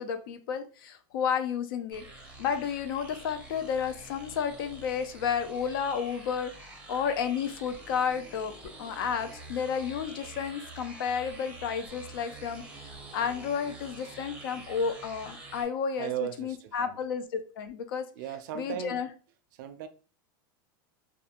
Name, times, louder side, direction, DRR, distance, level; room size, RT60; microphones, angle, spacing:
voice 1, 0.0-2.0 2.4-8.5 8.8-16.1 16.4-18.1 18.5-19.1, left 7 dB, 80° left, 0.4 m, -32 dB
sound 1, 1.9-15.6, right 2 dB, 10° right, 0.6 m, -47 dB
voice 2, 16.0-17.0 18.1-19.0 19.5-19.9, right 10 dB, 60° right, 0.4 m, -36 dB
2.5 x 2.2 x 2.8 m
supercardioid pair, 160°, 12 cm